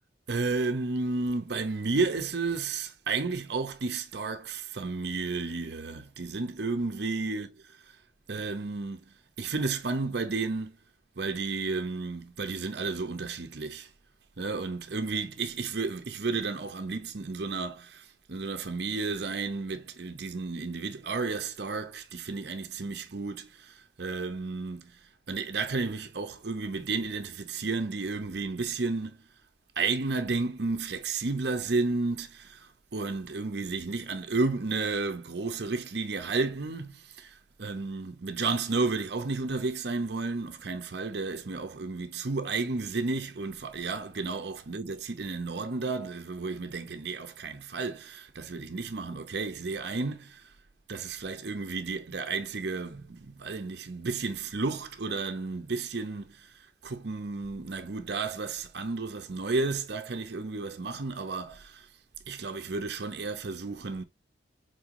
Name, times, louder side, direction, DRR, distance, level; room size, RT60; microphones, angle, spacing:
voice 1, 0.3-7.5 8.3-9.0 9.4-10.8 11.2-13.9 14.4-25.0 25.3-29.2 29.8-50.5 50.9-56.5 56.8-61.9 62.3-64.0, right 3 dB, 60° right, 0.7 m, -32 dB
4.5 x 3.7 x 2.9 m
head